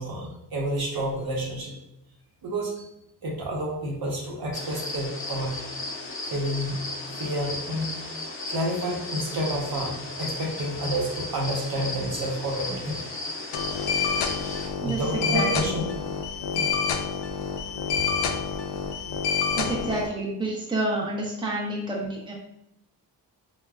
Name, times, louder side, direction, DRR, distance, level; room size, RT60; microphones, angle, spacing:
voice 1, 0.0-1.8 2.4-2.9 3.2-5.6 6.3-6.8 7.2-7.9 8.5-13.1 14.4-14.5 14.8-15.8 16.5-16.7, right 1 dB, 60° right, -2 dB, 0.9 m, -29 dB
sound 1, 4.5-14.7, left 2 dB, 30° left, 0.6 m, -35 dB
sound 2, 13.5-20.1, left 6 dB, 75° left, 0.5 m, -28 dB
voice 2, 14.8-15.7 19.6-22.3, right 2 dB, 10° right, -3 dB, 0.8 m, -29 dB
3.4 x 2.2 x 2.3 m, 0.81 s
cardioid pair, 70°, 42 cm